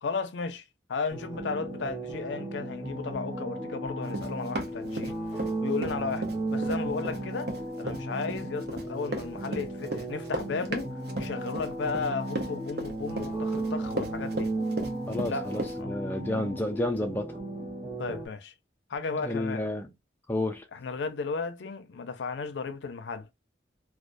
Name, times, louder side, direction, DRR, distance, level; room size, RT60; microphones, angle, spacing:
voice 1, 0.0-5.2 5.6-14.5 15.3-15.9 18.0-18.5 18.9-19.7 20.7-23.3, left 4 dB, 90° left, 0.5 m, -34 dB
sound 1, 1.1-18.3, right 2 dB, 25° right, 0.8 m, -35 dB
Run, 4.1-5.5 5.8-15.8, right 1 dB, 65° right, 0.6 m, -35 dB
voice 2, 15.1-17.3 19.2-19.9 20.3-20.7, left 1 dB, 10° left, 0.4 m, -30 dB
2.3 x 2.1 x 2.5 m
head